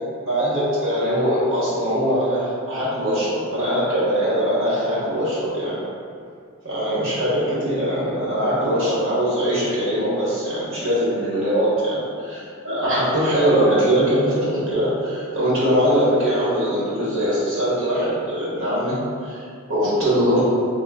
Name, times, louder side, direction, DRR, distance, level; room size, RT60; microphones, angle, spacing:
voice 1, 0.0-5.8 6.6-19.4 19.7-20.5, equal, 65° right, -10 dB, 1.3 m, -21 dB
3.0 x 2.1 x 3.4 m, 2.3 s
head